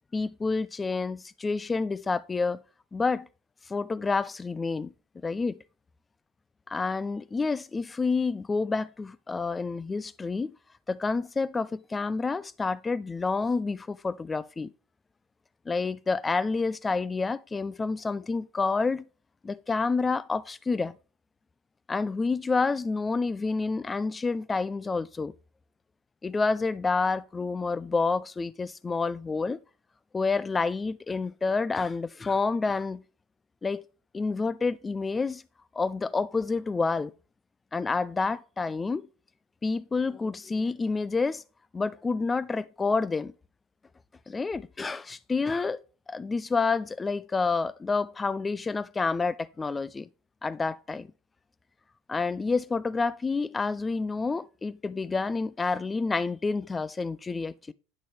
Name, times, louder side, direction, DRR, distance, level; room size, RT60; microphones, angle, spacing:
voice 1, 0.1-2.6 2.9-3.3 3.7-4.9 5.2-5.6 6.7-10.5 10.9-14.7 15.7-19.1 19.4-21.0 21.9-25.3 26.2-29.6 30.1-33.0 33.6-33.8 34.1-35.4 35.7-37.1 37.7-39.1 39.6-41.4 41.7-43.3 44.3-45.8 46.1-50.1 50.4-51.1 52.1-57.7, left 4 dB, 20° left, 0.4 m, -28 dB
9.4 x 6.2 x 3.4 m
figure-of-eight pair, 75°, 0 cm